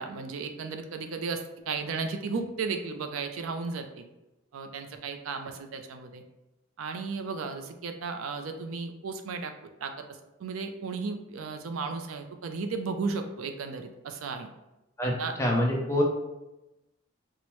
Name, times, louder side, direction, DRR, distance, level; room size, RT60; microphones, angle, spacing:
voice 1, 0.0-4.0 4.5-6.2 6.8-9.5 9.8-9.9 10.4-14.5 15.0-15.3, right 4 dB, 80° right, 6 dB, 0.4 m, -34 dB
voice 2, 15.0-16.0, left 1 dB, 15° left, -1 dB, 0.5 m, -26 dB
4.5 x 2.0 x 3.0 m, 0.98 s
head